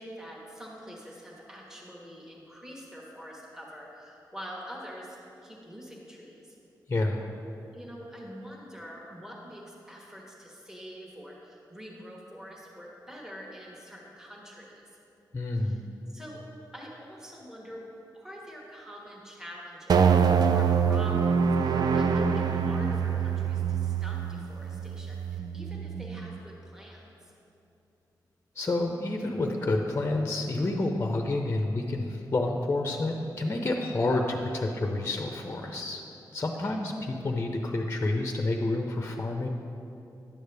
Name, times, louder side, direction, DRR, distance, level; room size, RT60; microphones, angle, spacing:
voice 1, 0.0-5.2 5.4-6.6 7.7-15.0 15.6-15.8 16.1-16.4 16.7-17.8 18.1-27.3 36.4-36.8, equal, 5° right, -3 dB, 1.2 m, -45 dB
voice 2, 6.9-7.2 15.3-15.8 28.6-36.0 36.3-39.5, left 2 dB, 30° left, 3 dB, 0.6 m, -29 dB
sound 1, 19.9-26.4, right 6 dB, 60° right, 0.4 m, -25 dB
10.0 x 6.4 x 3.4 m, 2.8 s
cardioid pair, 70°, 8 cm